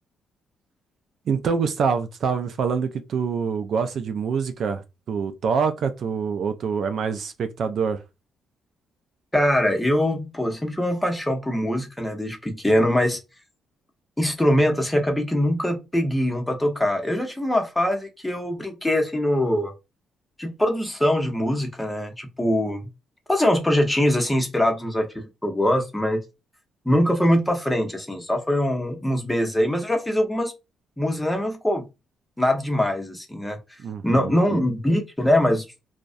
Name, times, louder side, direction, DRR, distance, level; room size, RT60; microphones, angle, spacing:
voice 1, 1.3-8.0 33.8-34.6, right 6 dB, 60° right, 0.3 m, -26 dB
voice 2, 9.3-13.2 14.2-19.7 20.4-22.8 23.3-26.2 26.9-30.5 31.0-31.8 32.4-33.6 34.0-35.6, left 1 dB, 10° left, 0.7 m, -22 dB
2.3 x 2.1 x 2.5 m
cardioid pair, 90°, 0 cm